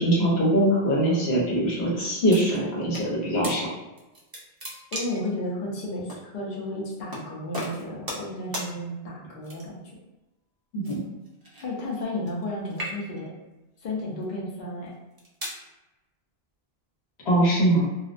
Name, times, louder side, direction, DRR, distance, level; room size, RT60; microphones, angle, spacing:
voice 1, 0.0-3.7 10.7-11.0 17.2-17.9, right 1 dB, 75° left, -5 dB, 1.1 m, -22 dB
sound 1, 2.3-3.1 3.4-3.6 4.0-5.3 6.1-6.2 7.1-7.3 7.5-8.3 8.5-8.7 9.4-9.9 10.8-12.4 12.7-13.3 14.0-14.2 14.9-15.6, equal, 35° right, 0.3 m, -36 dB
voice 2, 4.9-9.8 11.6-13.3 13.8-14.9, left 1 dB, 55° left, -4 dB, 0.8 m, -33 dB
2.4 x 2.0 x 2.5 m, 1.0 s
omnidirectional pair, 1.1 m